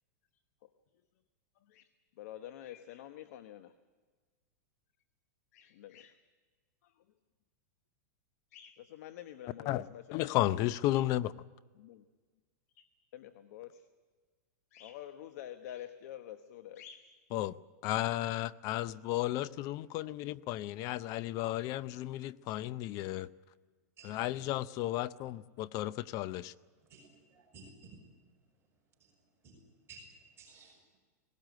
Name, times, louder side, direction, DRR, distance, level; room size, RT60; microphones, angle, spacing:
voice 1, 2.2-3.7 5.5-6.2 6.8-7.0 8.5-10.5 11.8-12.0 12.7-12.9 13.1-13.9 14.7-17.1, left 11 dB, 65° left, 10 dB, 1.0 m, -48 dB
voice 2, 10.1-11.3 17.3-17.5 17.8-23.3 24.0-26.5, left 15 dB, 40° left, 18 dB, 0.6 m, -33 dB
voice 3, 26.9-28.1 29.0-29.2 29.4-31.0, right 3 dB, 25° right, -1 dB, 5.4 m, -56 dB
19.0 x 17.5 x 9.2 m, 1.5 s
supercardioid pair, 140°, 9 cm